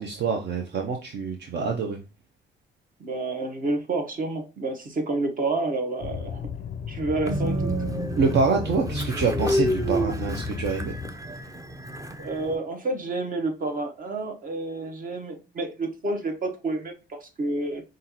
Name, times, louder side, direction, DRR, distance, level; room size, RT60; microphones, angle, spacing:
voice 1, 0.0-2.0 8.2-10.9, right 4 dB, 60° right, 3 dB, 0.7 m, -26 dB
voice 2, 3.0-6.4 6.9-7.7 12.2-17.8, right 2 dB, 45° right, 5 dB, 1.1 m, -29 dB
sound 1, 6.0-11.1, left 6 dB, 45° left, 0.4 m, -34 dB
Train, 7.3-12.5, right 1 dB, 15° right, 0.6 m, -29 dB
5.4 x 2.5 x 2.8 m, 0.29 s
cardioid pair, 90°, 20 cm